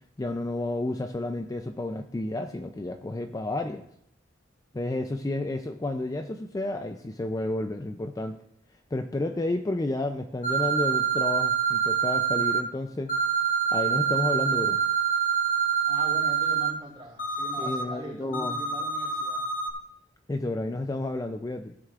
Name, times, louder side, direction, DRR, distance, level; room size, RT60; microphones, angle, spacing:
voice 1, 0.2-3.8 4.7-8.4 8.9-13.1 13.7-14.8 17.6-18.6 20.3-21.7, left 2 dB, 20° left, 6 dB, 0.4 m, -31 dB
sound 1, 10.4-12.6 13.1-16.7 17.2-17.8 18.3-19.7, right 7 dB, 45° left, 1.2 m, -26 dB
voice 2, 15.9-19.5, right 1 dB, 25° right, -3 dB, 3.6 m, -41 dB
15.5 x 7.7 x 2.4 m, 0.72 s
head